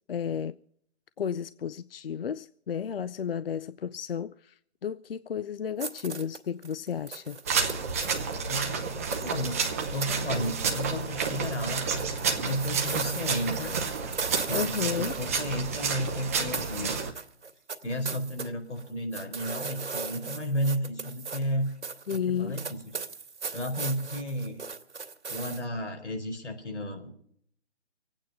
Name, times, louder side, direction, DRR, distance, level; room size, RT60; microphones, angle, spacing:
voice 1, 0.1-0.6 1.2-7.4 14.5-15.1 22.1-22.6, left 8 dB, 55° left, 0.5 m, -33 dB
sound 1, 5.8-8.4 9.1-9.5 10.0-10.1 10.4-11.0 11.3-16.3 16.5-18.5 18.8-25.6, right 5 dB, 85° right, 2.2 m, -38 dB
sound 2, 7.5-17.1, right 5 dB, 15° right, 0.7 m, -30 dB
voice 2, 8.5-9.6 9.9-11.8 12.4-13.8 14.4-17.0 17.8-21.7 22.1-22.8 23.5-24.6 25.3-27.1, equal, 85° left, 4.6 m, -33 dB
25.5 x 9.0 x 5.5 m
hypercardioid pair, 160°, 34 cm